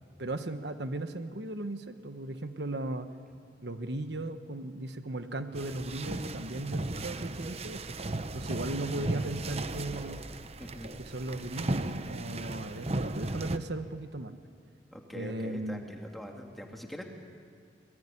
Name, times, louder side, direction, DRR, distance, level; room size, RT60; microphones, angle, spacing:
voice 1, 0.2-3.1 3.6-8.0 8.3-10.2 11.0-14.3 15.1-15.8, right 2 dB, 70° right, 8 dB, 1.2 m, -37 dB
sound 1, 5.5-13.6, right 2 dB, 35° right, 0.9 m, -36 dB
voice 2, 8.7-9.1 10.6-10.9 14.9-17.0, equal, ahead, 1 dB, 2.5 m, -43 dB
25.0 x 20.5 x 10.0 m, 2.2 s
head